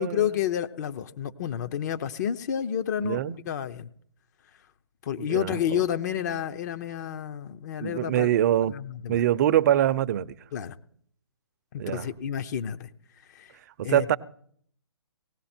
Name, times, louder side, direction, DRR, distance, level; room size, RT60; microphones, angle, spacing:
voice 1, 0.0-3.9 5.0-8.3 8.7-9.2 10.5-10.8 11.7-12.9 13.3-13.5 13.8-14.1, left 10 dB, 40° left, 10 dB, 0.7 m, -30 dB
voice 2, 3.0-3.4 5.2-5.8 7.8-8.7 9.1-10.3 11.8-12.1 13.9-14.2, right 11 dB, 40° right, 15 dB, 0.6 m, -24 dB
18.5 x 15.5 x 4.4 m, 0.63 s
hypercardioid pair, 140°, 14 cm